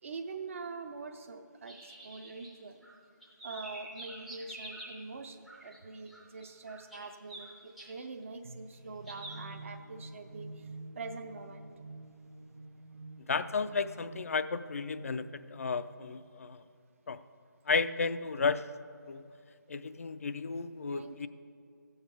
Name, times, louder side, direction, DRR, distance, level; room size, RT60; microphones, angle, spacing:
voice 1, 0.0-2.8 3.4-10.7 11.0-11.7 20.9-21.3, right 4 dB, 40° right, 6 dB, 0.6 m, -44 dB
sound 1, 1.7-2.9 3.2-5.0 5.5-5.8 6.1-7.9 9.1-9.4, right 1 dB, ahead, 0.5 m, -47 dB
sound 2, 8.4-16.2, right 2 dB, 80° right, 0.6 m, -49 dB
voice 2, 13.2-16.6 17.1-17.2 17.7-18.7 19.1-19.3 19.7-21.3, left 4 dB, 45° left, 13 dB, 0.4 m, -33 dB
15.0 x 7.2 x 4.9 m, 2.3 s
figure-of-eight pair, 155°, 11 cm